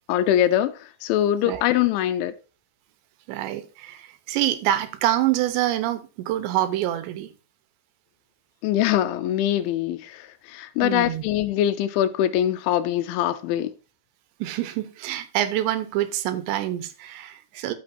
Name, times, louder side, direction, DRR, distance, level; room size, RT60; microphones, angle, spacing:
voice 1, 0.1-0.7 1.0-2.3 8.6-10.0 10.5-13.7, left 12 dB, 90° left, 3.2 m, -22 dB
voice 2, 3.3-7.3 10.8-11.2 14.4-17.7, right 13 dB, 80° right, 3.2 m, -26 dB
13.5 x 6.1 x 2.7 m
omnidirectional pair, 5.2 m